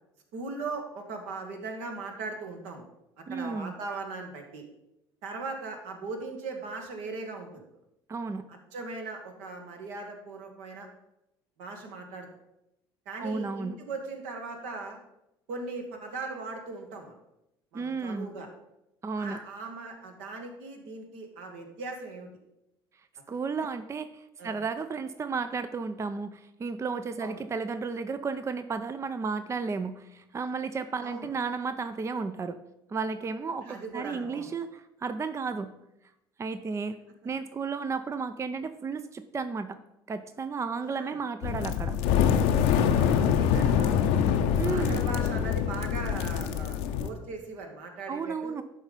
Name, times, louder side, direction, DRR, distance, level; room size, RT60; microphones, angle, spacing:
voice 1, 0.3-2.8 3.3-4.6 5.2-7.6 8.5-10.9 11.6-12.3 13.0-15.0 15.5-17.1 17.7-18.5 19.2-22.3 24.4-24.6 27.2-27.4 31.0-31.3 33.6-34.5 40.8-41.2 42.9-44.1 44.6-48.6, right 3 dB, 65° right, 3 dB, 1.6 m, -39 dB
voice 2, 3.3-3.7 8.1-8.4 13.2-13.8 17.7-18.3 19.0-19.4 23.3-32.6 32.9-35.7 36.4-37.0 37.2-39.8 40.1-42.0 44.6-45.0 48.1-48.6, right 4 dB, 20° right, 11 dB, 0.5 m, -33 dB
sound 1, 41.4-47.1, left 8 dB, 65° left, 0.7 m, -25 dB
11.0 x 4.0 x 5.3 m, 0.87 s
figure-of-eight pair, 60°, 13 cm